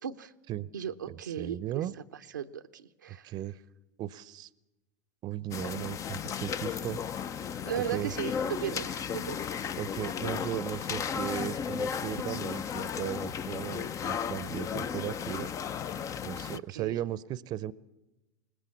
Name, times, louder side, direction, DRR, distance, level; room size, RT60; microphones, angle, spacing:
voice 1, 0.0-0.3 0.7-1.8 2.3-3.3 7.6-9.4 16.5-17.0, right 9 dB, 85° right, 7 dB, 0.8 m, -36 dB
voice 2, 1.1-1.9 3.1-3.6 4.0-4.5 5.2-7.0 7.9-8.1 9.8-15.5 16.2-17.7, right 13 dB, 45° right, 20 dB, 0.7 m, -36 dB
sound 1, 5.5-16.6, left 7 dB, 35° left, 0.7 m, -35 dB
21.5 x 20.0 x 7.1 m, 1.0 s
hypercardioid pair, 85°, 10 cm